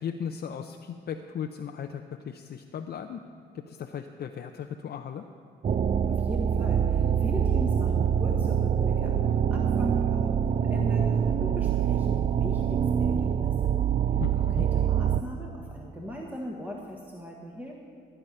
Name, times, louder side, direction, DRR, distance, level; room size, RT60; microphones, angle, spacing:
voice 1, 0.0-3.2 3.5-5.2 14.2-14.7, left 8 dB, 55° left, 4 dB, 0.6 m, -37 dB
sound 1, 5.6-15.2, right 8 dB, 35° right, 0.4 m, -25 dB
voice 2, 6.1-13.8 14.4-17.7, equal, 10° right, -1 dB, 1.5 m, -39 dB
17.0 x 9.0 x 5.6 m, 2.4 s
cardioid pair, 90°, 20 cm